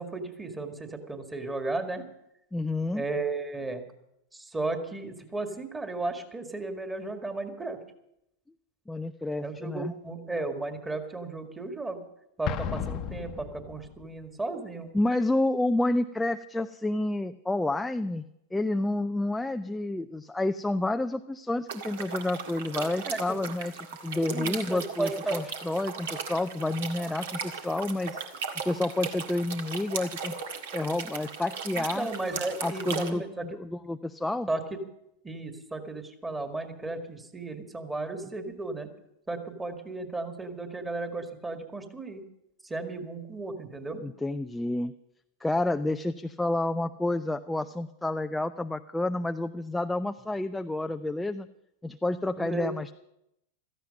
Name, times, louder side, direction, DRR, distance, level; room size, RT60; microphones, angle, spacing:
voice 1, 0.0-2.1 2.9-3.8 4.3-7.8 9.4-12.0 12.4-14.9 23.1-23.2 24.3-25.4 31.8-33.5 34.5-34.6 35.2-38.9 39.3-42.2 42.6-44.0 52.4-52.7, right 2 dB, 10° right, 6 dB, 2.0 m, -34 dB
voice 2, 2.5-3.0 8.9-9.9 14.9-18.2 18.5-23.7 24.0-28.2 28.7-30.3 30.7-32.1 32.6-34.5 43.9-44.9 45.4-51.5 51.8-52.9, left 2 dB, 5° left, 8 dB, 0.4 m, -29 dB
Explosion, 12.5-14.1, left 8 dB, 35° left, 1.0 m, -34 dB
sound 1, 21.7-33.1, right 5 dB, 55° right, 1.7 m, -37 dB
16.0 x 14.0 x 5.4 m, 0.81 s
figure-of-eight pair, 90°, 0 cm